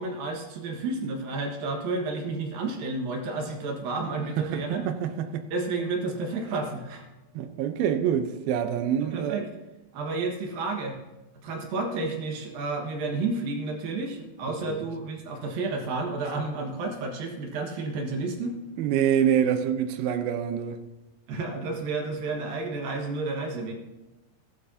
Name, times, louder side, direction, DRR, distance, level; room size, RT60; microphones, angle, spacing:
voice 1, 0.0-4.8 5.5-7.0 9.0-9.5 9.9-11.0 11.4-18.6 21.3-23.7, right 3 dB, 65° right, 2.8 m, -31 dB
voice 2, 4.4-5.4 7.4-9.4 14.7-14.8 18.8-20.8, right 9 dB, 80° right, 2.1 m, -26 dB
16.5 x 12.5 x 2.7 m
omnidirectional pair, 5.1 m